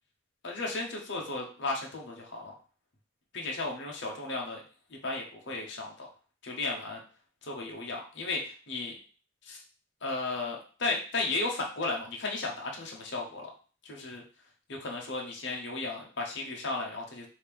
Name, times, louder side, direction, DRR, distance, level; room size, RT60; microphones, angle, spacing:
voice 1, 0.4-2.5 3.3-4.6 4.9-6.1 6.4-7.0 7.4-8.9 9.4-9.6 10.0-13.5 13.8-14.2 14.7-17.3, left 3 dB, 55° left, -1 dB, 0.9 m, -34 dB
5.0 x 2.8 x 3.4 m, 0.39 s
head